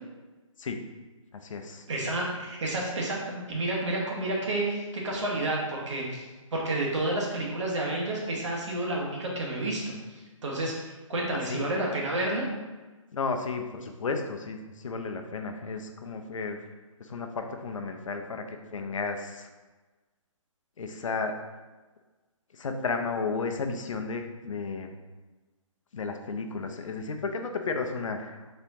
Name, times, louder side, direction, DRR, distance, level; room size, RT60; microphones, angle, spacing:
voice 1, 1.3-1.8 11.3-11.7 13.1-16.6 17.0-19.5 20.8-21.4 22.5-24.9 25.9-28.4, left 4 dB, 70° left, 5 dB, 0.6 m, -33 dB
voice 2, 1.9-12.5, right 1 dB, 60° right, -2 dB, 1.5 m, -30 dB
4.4 x 4.3 x 2.7 m, 1.2 s
hypercardioid pair, 155°, 17 cm